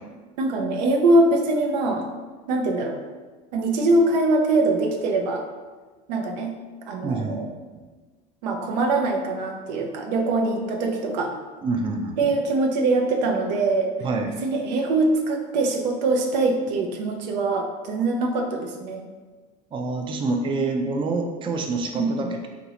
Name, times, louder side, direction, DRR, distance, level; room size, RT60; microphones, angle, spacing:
voice 1, 0.4-2.1 2.5-3.0 3.5-5.5 6.1-6.6 6.9-7.5 8.4-11.4 12.2-13.9 14.4-19.1 22.0-22.3, right 2 dB, 85° right, 4 dB, 0.5 m, -23 dB
voice 2, 7.0-7.4 11.6-12.4 14.0-14.3 19.7-22.5, right 3 dB, 25° right, 3 dB, 0.4 m, -27 dB
3.1 x 2.5 x 2.8 m, 1.3 s
supercardioid pair, 90°, 21 cm